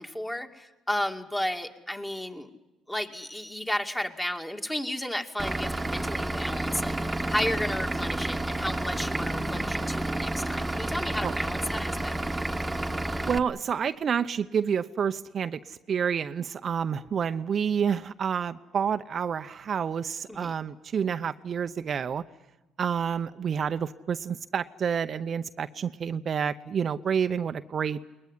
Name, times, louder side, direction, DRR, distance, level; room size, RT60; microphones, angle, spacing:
voice 1, 0.0-2.5 2.9-7.0 7.3-12.1 20.3-20.5, left 1 dB, 10° left, 5 dB, 2.3 m, -33 dB
Vehicle / Engine, 5.4-13.4, right 1 dB, 15° right, 1.4 m, -30 dB
voice 2, 13.2-22.2 22.8-28.0, right 7 dB, 50° right, 10 dB, 0.8 m, -29 dB
21.0 x 20.0 x 9.9 m, 1.1 s
supercardioid pair, 70°, 0 cm